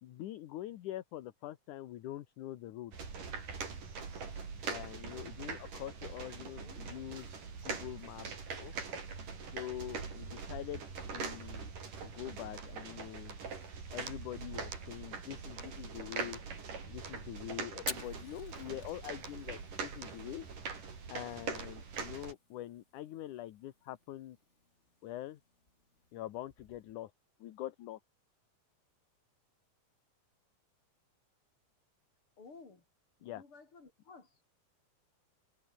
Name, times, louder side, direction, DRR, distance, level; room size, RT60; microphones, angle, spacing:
voice 1, 0.0-2.9 4.7-7.3 7.6-8.7 9.5-10.8 11.1-11.7 12.1-13.4 13.9-16.4 16.9-20.5 21.1-24.4 25.0-25.4 26.1-27.1 27.4-28.0 33.2-33.4, left 13 dB, 70° left, 2.5 m, -44 dB
sound 1, 2.9-22.3, right 5 dB, 65° right, 6.5 m, -43 dB
Fire, 17.7-26.9, left 2 dB, 20° left, 4.5 m, -51 dB
voice 2, 32.4-32.8 33.2-34.4, left 4 dB, 35° left, 5.6 m, -55 dB
omnidirectional pair, 4.0 m